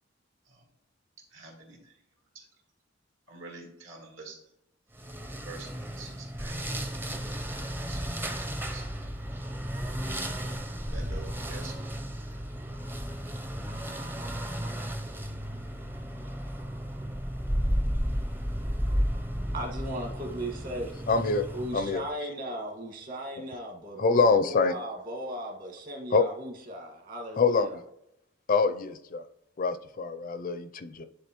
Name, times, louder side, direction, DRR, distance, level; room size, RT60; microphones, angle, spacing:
voice 1, 1.2-2.0 2.3-2.5 3.3-4.5 5.3-6.9 7.7-9.1 10.3-12.4, right 3 dB, 75° right, 0 dB, 2.2 m, -48 dB
sound 1, 5.0-22.1, equal, 10° right, 0.6 m, -33 dB
voice 2, 19.5-20.9 21.5-27.8, right 1 dB, 45° right, 1 dB, 1.7 m, -37 dB
voice 3, 21.1-21.4 21.7-22.0 24.0-24.7 26.1-26.2 27.4-27.8 28.5-29.2 29.6-31.0, left 4 dB, 45° left, 11 dB, 0.4 m, -25 dB
10.5 x 3.8 x 3.0 m, 0.79 s
head